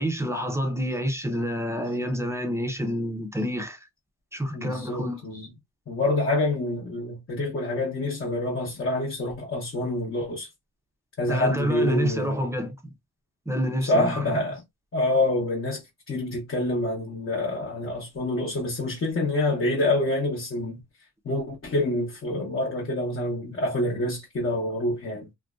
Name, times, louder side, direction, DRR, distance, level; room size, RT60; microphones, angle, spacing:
voice 1, 0.0-3.9 4.3-5.2 11.3-12.9 13.5-14.4, equal, 10° right, 0.4 m, -28 dB
voice 2, 4.5-5.5 5.9-10.5 11.2-12.4 13.8-14.6 14.9-20.8 21.2-25.3, left 2 dB, 40° left, 0.8 m, -27 dB
2.5 x 2.1 x 2.3 m
wide cardioid pair, 100°, 33 cm